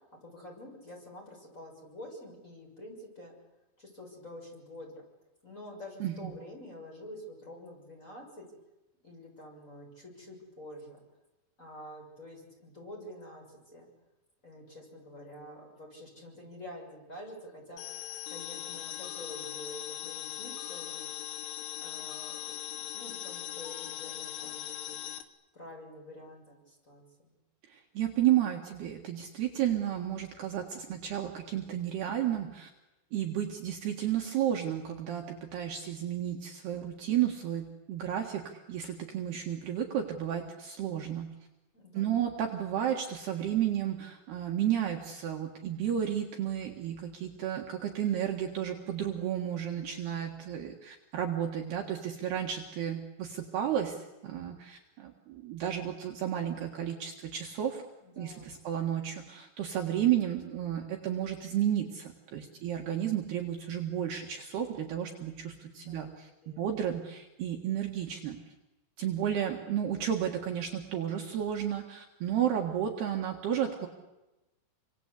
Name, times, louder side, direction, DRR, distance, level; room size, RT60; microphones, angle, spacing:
voice 1, 0.2-3.3 3.8-5.0 5.4-8.5 9.0-11.0 11.6-13.9 14.4-17.8 18.3-21.1 21.8-25.1 25.5-27.3 41.7-42.3 58.0-58.6 65.0-66.6, left 1 dB, 15° left, 0 dB, 7.0 m, -48 dB
sound 1, 17.8-25.2, left 12 dB, 80° left, 3.7 m, -40 dB
voice 2, 27.7-32.7 33.1-41.3 41.9-57.8 58.2-68.4 69.0-73.9, right 10 dB, 65° right, 1 dB, 3.4 m, -32 dB
28.5 x 25.0 x 8.4 m, 1.0 s
omnidirectional pair, 5.6 m